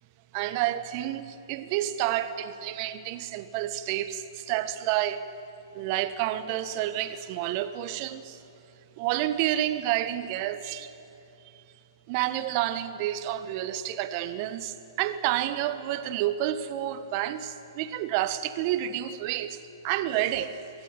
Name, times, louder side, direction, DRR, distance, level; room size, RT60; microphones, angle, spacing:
voice 1, 0.3-5.2 5.7-8.4 9.0-10.9 11.5-11.6 12.1-19.6 19.8-20.5, right 13 dB, 40° right, 11 dB, 1.2 m, -29 dB
24.0 x 13.5 x 9.1 m, 2.7 s
figure-of-eight pair, 120°, 2 cm